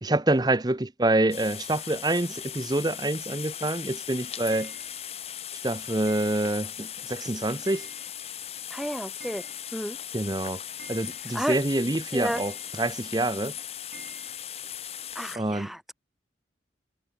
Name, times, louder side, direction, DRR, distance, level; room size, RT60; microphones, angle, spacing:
voice 1, 0.0-4.7 5.6-7.9 10.1-10.6 10.9-13.5 15.3-15.7, right 2 dB, 20° right, 0.8 m, -26 dB
sound 1, 1.3-15.4, left 10 dB, 35° left, 1.6 m, -38 dB
Clock, 4.5-5.2 6.1-6.8 7.1-7.2 7.7-8.4 8.7-8.8 9.0-10.0 10.3-10.4 10.8-11.6 12.3-13.1 13.9-14.4, right 5 dB, 60° right, 2.3 m, -50 dB
voice 2, 8.7-9.5 9.7-10.0 11.3-11.6 12.1-12.4 15.2-15.9, equal, ahead, 0.4 m, -31 dB
head